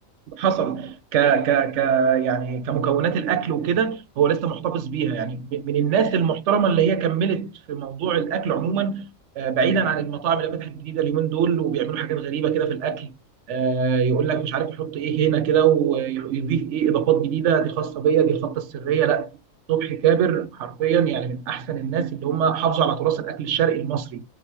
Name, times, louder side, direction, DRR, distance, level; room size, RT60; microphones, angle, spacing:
voice 1, 0.3-9.1 9.4-13.1 13.5-19.3 19.7-24.2, right 8 dB, 65° right, 0.9 m, -22 dB
3.6 x 2.9 x 2.9 m
omnidirectional pair, 1.4 m